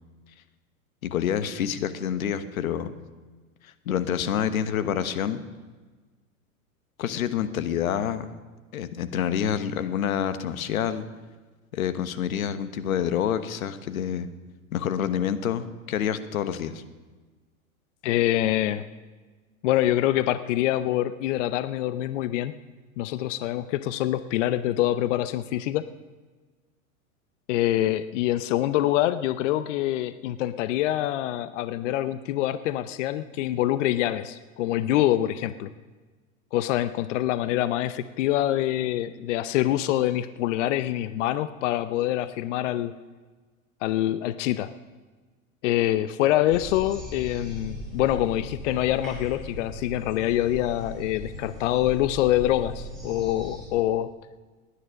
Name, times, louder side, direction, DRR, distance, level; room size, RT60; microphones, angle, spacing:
voice 1, 1.0-2.9 3.6-5.4 7.0-8.2 8.7-11.0 11.7-14.3 14.7-16.8, left 9 dB, 75° left, 12 dB, 1.2 m, -27 dB
voice 2, 18.0-18.8 19.6-22.5 23.0-25.8 27.5-35.7 36.5-42.9 43.8-44.7 45.6-54.1, left 13 dB, 60° left, 13 dB, 0.7 m, -25 dB
sound 1, 46.5-53.7, equal, ahead, 6.2 m, -39 dB
18.5 x 10.0 x 6.4 m, 1.3 s
hypercardioid pair, 115°, 42 cm